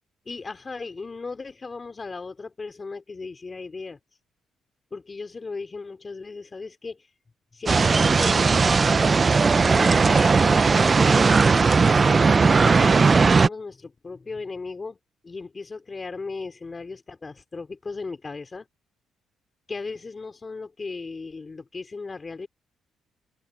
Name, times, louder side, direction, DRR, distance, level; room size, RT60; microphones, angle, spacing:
voice 1, 0.3-4.0 4.9-7.1 7.5-11.4 11.8-15.0 15.2-18.7 19.7-22.5, left 4 dB, 30° left, 3.1 m, -36 dB
sound 1, 7.7-13.5, right 4 dB, 35° right, 0.5 m, -18 dB
open air
cardioid pair, 90°, 0 cm